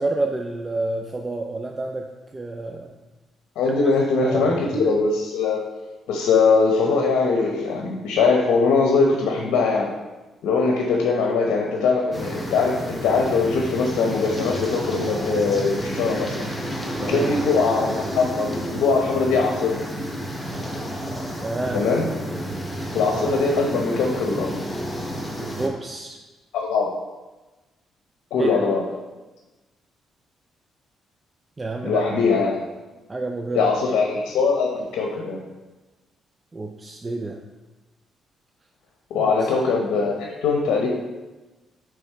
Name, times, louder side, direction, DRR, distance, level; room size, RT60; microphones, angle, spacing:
voice 1, 0.0-2.9 3.6-3.7 4.2-4.5 4.7-4.9 17.0-17.4 21.4-21.9 25.6-26.2 28.4-28.6 31.6-32.1 33.1-33.7 36.5-37.4 39.2-39.5, right 2 dB, 25° right, 3 dB, 0.4 m, -29 dB
voice 2, 3.6-5.6 6.1-9.9 10.4-16.5 17.1-19.7 21.7-22.1 22.9-24.5 26.5-26.9 28.3-28.8 31.8-32.6 33.5-35.4 39.1-40.9, left 4 dB, 85° left, 0 dB, 0.8 m, -21 dB
sound 1, 12.1-25.7, equal, 10° left, 1.1 m, -30 dB
7.0 x 3.5 x 4.5 m, 1.1 s
cardioid pair, 90°, 0 cm